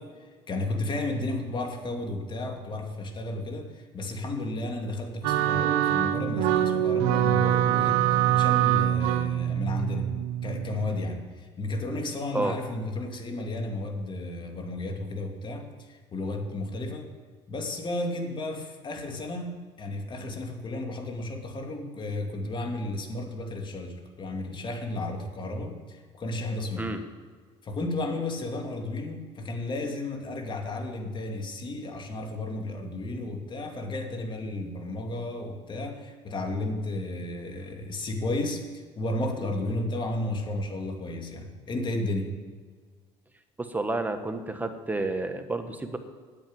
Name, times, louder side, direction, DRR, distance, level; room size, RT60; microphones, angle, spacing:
voice 1, 0.0-17.1 17.5-26.9 27.6-42.4, left 2 dB, 40° left, 3 dB, 2.4 m, -33 dB
sound 1, 5.2-11.0, right 11 dB, 90° right, 0.7 m, -24 dB
voice 2, 43.6-46.0, right 2 dB, 15° right, 7 dB, 1.4 m, -30 dB
9.2 x 8.5 x 9.5 m, 1.5 s
supercardioid pair, 90°, 13 cm